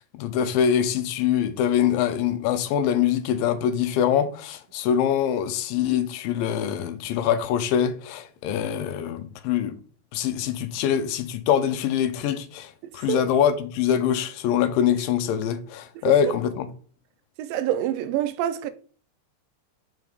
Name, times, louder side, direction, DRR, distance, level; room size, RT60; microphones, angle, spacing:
voice 1, 0.0-9.8 10.1-16.7, left 9 dB, 90° left, 2.4 m, -24 dB
voice 2, 16.0-16.4 17.4-18.7, right 11 dB, 85° right, 2.3 m, -27 dB
5.8 x 4.6 x 3.9 m
omnidirectional pair, 3.9 m